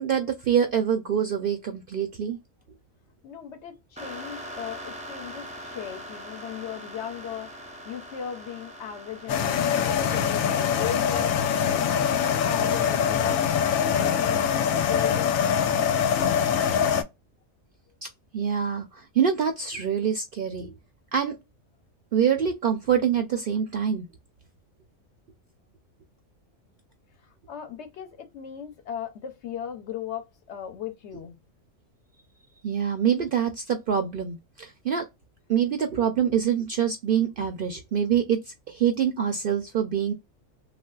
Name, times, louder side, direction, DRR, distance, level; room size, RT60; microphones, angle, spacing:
voice 1, 0.0-2.4 18.3-20.7 21.1-21.4 22.1-24.1 32.6-35.1 35.5-40.1, right 8 dB, 65° right, 0.5 m, -25 dB
voice 2, 3.2-13.4 13.9-15.3 27.5-31.4, left 9 dB, 65° left, 0.9 m, -37 dB
sound 1, 4.0-11.0, equal, 10° right, 0.3 m, -42 dB
sound 2, 9.3-17.0, left 8 dB, 90° left, 1.0 m, -23 dB
3.3 x 2.5 x 2.3 m
omnidirectional pair, 1.4 m